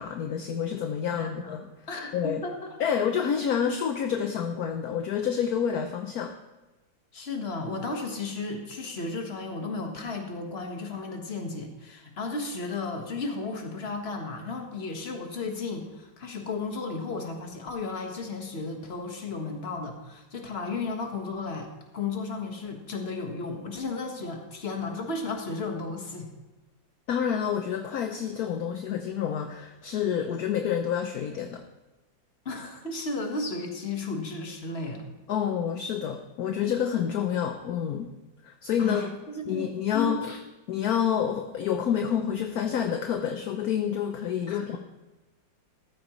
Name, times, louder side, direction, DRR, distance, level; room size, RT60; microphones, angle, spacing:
voice 1, 0.0-1.6 2.1-2.4 2.8-6.3 27.1-31.6 35.3-38.1 38.4-39.1 39.5-40.4 40.7-44.8, left 8 dB, 65° left, 5 dB, 1.1 m, -28 dB
voice 2, 1.1-1.6 1.9-2.7 7.1-26.3 32.4-35.0 38.8-40.2 44.5-44.6, left 3 dB, 35° left, 3 dB, 1.6 m, -34 dB
14.0 x 13.5 x 3.1 m, 1.1 s
omnidirectional pair, 2.0 m